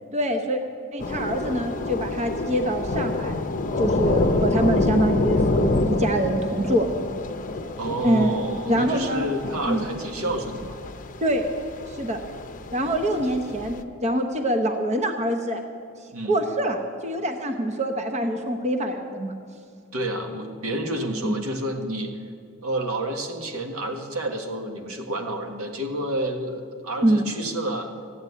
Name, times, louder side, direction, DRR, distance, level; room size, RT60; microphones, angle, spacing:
voice 1, 0.1-0.6 0.9-3.4 3.8-6.9 8.0-8.3 8.7-9.3 9.7-9.8 11.2-11.4 11.9-12.2 12.7-15.6 16.3-16.8 17.0-19.3 21.2-21.3 27.0-27.2, right 1 dB, 30° right, 5 dB, 0.9 m, -24 dB
Thunder / Rain, 1.0-13.8, left 2 dB, 40° left, 0.7 m, -27 dB
voice 2, 7.8-10.8 16.1-16.3 19.9-22.1 22.6-27.9, right 1 dB, 85° right, 4 dB, 1.7 m, -29 dB
14.5 x 9.6 x 8.3 m, 2.4 s
head